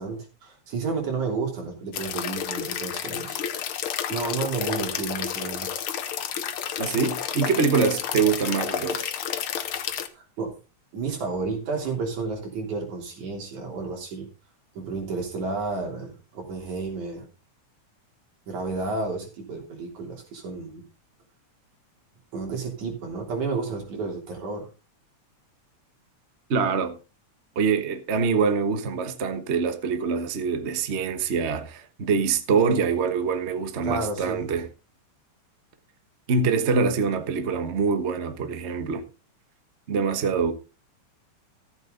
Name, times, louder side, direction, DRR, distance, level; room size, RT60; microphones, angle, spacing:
voice 1, 0.0-3.4 4.1-5.7 10.1-10.5 10.9-14.3 14.7-17.3 18.5-20.8 22.3-24.7 33.8-34.4, right 4 dB, 85° right, 4.7 m, -31 dB
sound 1, 1.9-10.1, left 9 dB, 65° left, 1.4 m, -31 dB
voice 2, 6.8-9.1 26.5-27.0 27.5-34.7 36.3-39.0 39.9-40.5, right 5 dB, 70° right, 0.6 m, -24 dB
14.0 x 8.2 x 3.9 m
omnidirectional pair, 3.3 m